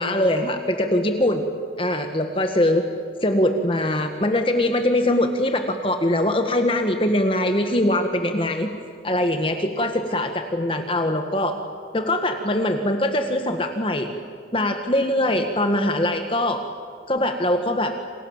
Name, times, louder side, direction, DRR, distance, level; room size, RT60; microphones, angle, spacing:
voice 1, 0.0-1.4 1.8-2.9 3.2-8.7 9.0-11.6 11.9-14.1 14.5-16.6 17.1-17.9, left 1 dB, 30° left, 6 dB, 1.6 m, -22 dB
28.5 x 28.0 x 7.4 m, 2.2 s
head